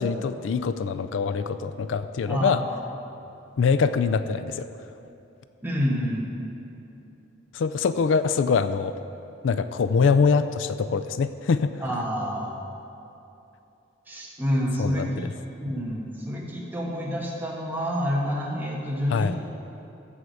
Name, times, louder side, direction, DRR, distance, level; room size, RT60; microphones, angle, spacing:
voice 1, 0.0-2.6 3.6-4.7 7.5-9.0 9.4-11.7 14.8-15.3 19.1-19.4, left 5 dB, 75° left, 12 dB, 0.4 m, -24 dB
voice 2, 2.3-2.6 5.6-6.3 11.8-12.5 14.1-15.3 15.5-19.4, equal, 10° right, -3 dB, 1.4 m, -28 dB
14.5 x 4.9 x 6.5 m, 2.8 s
head